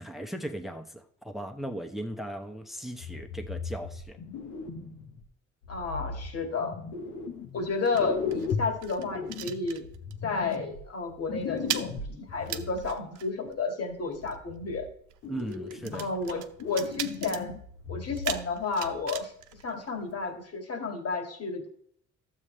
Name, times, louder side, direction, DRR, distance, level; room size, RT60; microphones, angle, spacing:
voice 1, 0.0-4.2 15.3-16.5, right 1 dB, ahead, 6 dB, 0.9 m, -38 dB
sound 1, 3.0-5.2 5.6-7.7 7.9-12.9 13.9-14.9 15.2-16.3 16.6-18.6 18.8-19.0 19.5-19.6, left 5 dB, 80° left, 1.3 m, -37 dB
voice 2, 5.7-6.8 7.5-9.8 10.2-14.9 15.9-17.6 17.9-19.3 19.6-21.7, left 4 dB, 50° left, 4 dB, 2.2 m, -32 dB
sound 2, 6.9-10.2 10.5-10.8 11.0-20.4, right 12 dB, 85° right, 0.8 m, -40 dB
12.5 x 7.5 x 3.3 m, 0.64 s
cardioid pair, 90°, 30 cm